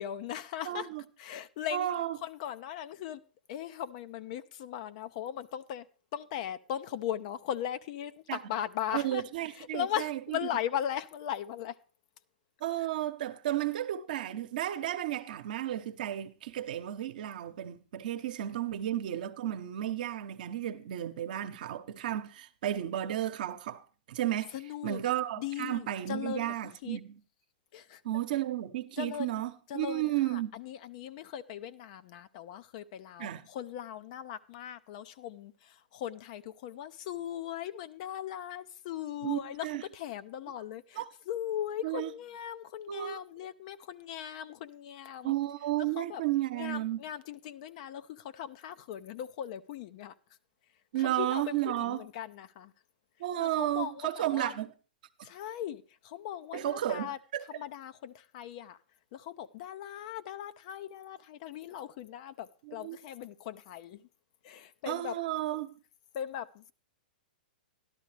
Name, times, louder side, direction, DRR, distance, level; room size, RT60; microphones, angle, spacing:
voice 1, 0.0-0.9 1.2-1.9 2.2-3.2 3.5-5.9 6.1-9.2 9.5-11.8 24.5-25.0 25.4-27.0 27.7-28.0 29.0-29.4 29.7-45.3 46.0-46.2 46.5-50.1 51.0-52.7 53.4-54.6 55.2-57.2 57.5-58.8 59.1-64.0 64.4-65.1 66.1-66.7, left 10 dB, 50° left, 0.6 m, -39 dB
voice 2, 0.6-1.0 1.7-2.2 8.3-8.4 8.9-10.4 12.6-23.8 24.1-24.5 24.8-27.2 28.0-30.5 33.2-33.4 39.2-39.8 41.0-41.1 41.8-42.1 42.9-43.2 45.2-47.0 50.9-52.0 53.2-54.7 56.5-57.4 62.7-63.0 64.9-65.8, right 13 dB, 65° right, 0.9 m, -33 dB
12.5 x 11.5 x 3.3 m
hypercardioid pair, 120°, 5 cm